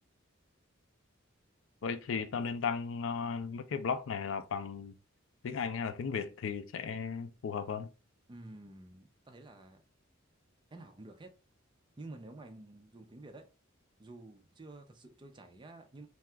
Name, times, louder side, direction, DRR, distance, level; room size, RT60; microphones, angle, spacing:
voice 1, 1.8-4.9 5.4-7.9, left 6 dB, 65° left, 0.4 m, -35 dB
voice 2, 8.3-9.8 10.7-11.3 12.0-13.5 14.0-16.1, right 2 dB, 25° right, 0.4 m, -50 dB
2.8 x 2.3 x 3.3 m
head